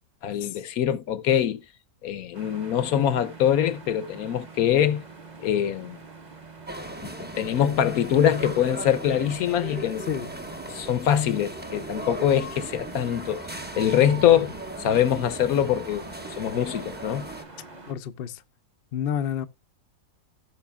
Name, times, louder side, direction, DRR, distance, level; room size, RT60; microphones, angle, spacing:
voice 1, 0.2-1.6 2.0-5.0 5.4-6.0 7.0-10.0 10.7-13.4 13.8-14.5 14.8-16.0 16.4-17.2, left 10 dB, 70° left, 1.1 m, -23 dB
sound 1, 2.3-17.9, right 4 dB, 30° right, 1.2 m, -46 dB
sound 2, 6.7-17.4, right 2 dB, 10° right, 0.8 m, -38 dB
voice 2, 17.9-18.4 18.9-19.5, left 8 dB, 55° left, 0.7 m, -29 dB
16.5 x 6.1 x 2.2 m
omnidirectional pair, 1.7 m